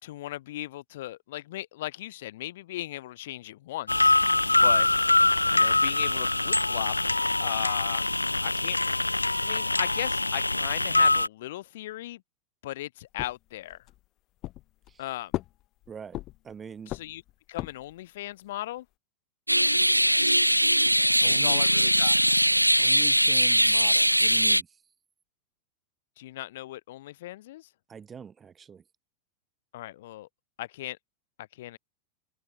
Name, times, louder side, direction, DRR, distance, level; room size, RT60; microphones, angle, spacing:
voice 1, 0.0-4.2 4.6-4.9 5.5-6.9 7.4-8.1 8.4-8.8 9.4-12.2 12.6-13.8 15.0-15.3 16.9-17.2 17.5-18.8 21.3-22.2 26.2-27.7 29.7-30.3 30.6-31.0 31.4-31.8, left 15 dB, 55° left, 3.3 m, -37 dB
sound 1, 3.9-11.3, left 2 dB, 85° left, 0.5 m, -24 dB
sound 2, 13.2-14.0 14.4-15.0 15.3-16.5 16.9-18.0, left 16 dB, 35° left, 1.1 m, -36 dB
voice 2, 15.9-16.2 16.4-16.9 20.3-20.4 21.2-21.6 22.8-24.8 27.9-28.8, right 7 dB, 20° right, 3.8 m, -43 dB
sound 3, 19.5-24.6, equal, 90° right, 0.4 m, -21 dB
open air
figure-of-eight pair, 90°, 0 cm